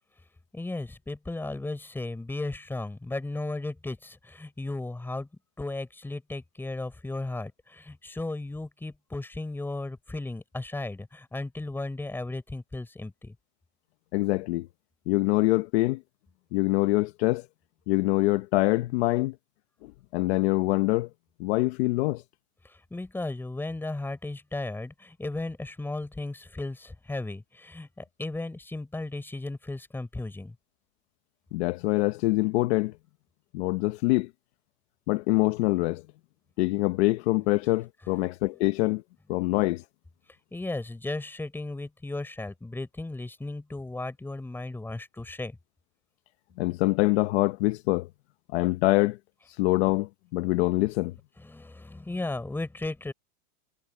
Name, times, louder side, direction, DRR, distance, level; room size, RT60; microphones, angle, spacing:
voice 1, 0.5-5.3 5.6-13.3 22.6-30.5 38.1-38.3 40.5-45.6 51.4-53.1, left 2 dB, 5° left, 4.9 m, -35 dB
voice 2, 14.1-14.7 15.1-16.0 16.5-17.4 17.9-19.3 20.1-21.1 21.4-22.2 31.5-32.9 33.5-34.3 35.1-36.0 36.6-39.0 39.3-39.8 46.6-48.1 48.5-49.2 49.5-51.1, left 21 dB, 45° left, 0.8 m, -24 dB
supercardioid pair, 170°, 46 cm